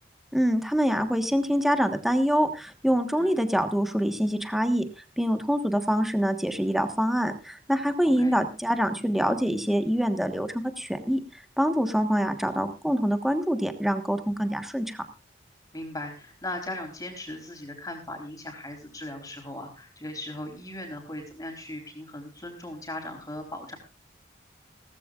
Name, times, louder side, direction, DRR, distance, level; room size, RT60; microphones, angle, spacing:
voice 1, 0.3-4.8 5.2-11.2 11.6-15.0, equal, ahead, 7 dB, 1.3 m, -25 dB
voice 2, 8.0-8.4 15.7-23.8, left 1 dB, 20° left, 3 dB, 3.9 m, -38 dB
18.0 x 15.0 x 2.4 m, 0.31 s
head